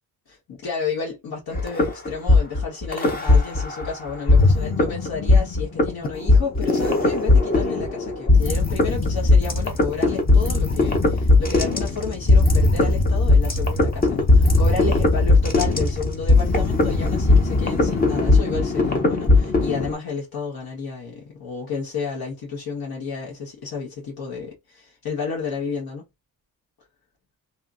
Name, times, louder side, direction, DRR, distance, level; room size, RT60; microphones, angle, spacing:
voice 1, 0.3-26.1, left 5 dB, 80° left, 1.4 m, -31 dB
sound 1, 1.6-3.9 4.3-19.9, left 2 dB, 25° left, 0.7 m, -18 dB
2.8 x 2.6 x 2.4 m
wide cardioid pair, 180°, 36 cm